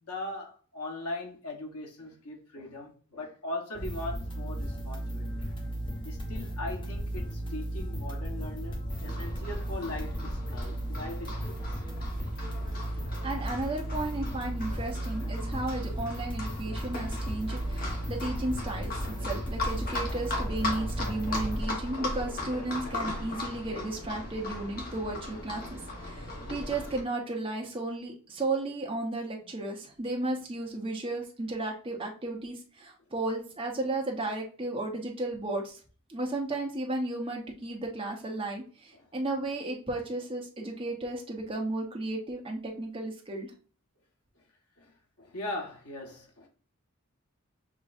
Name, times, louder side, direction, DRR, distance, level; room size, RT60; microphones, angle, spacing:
voice 1, 0.0-5.5 6.0-11.8 38.9-39.1 40.6-40.7 44.8-44.9 45.2-46.5, left 2 dB, 85° left, 1.2 m, -40 dB
sound 1, 3.7-21.6, right 1 dB, 20° left, 0.8 m, -35 dB
Livestock farm animals working animals, 8.9-27.0, left 2 dB, 40° left, 1.1 m, -38 dB
voice 2, 13.2-35.8 36.1-43.5, right 2 dB, 25° right, 1.0 m, -34 dB
6.5 x 3.1 x 2.6 m
head